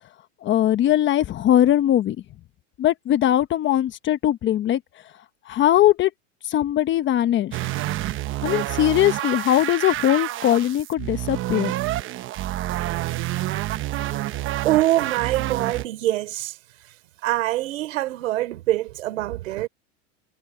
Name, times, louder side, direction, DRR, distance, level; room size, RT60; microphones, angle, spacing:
voice 1, 0.4-2.2 2.8-4.8 5.5-6.1 6.4-7.6 8.4-11.7, left 12 dB, 30° left, 1.2 m, -20 dB
sound 1, 7.5-15.8, right 15 dB, 30° right, 0.9 m, -28 dB
voice 2, 14.6-16.5 17.2-19.7, right 16 dB, 80° right, 3.5 m, -24 dB
supercardioid pair, 135°, 38 cm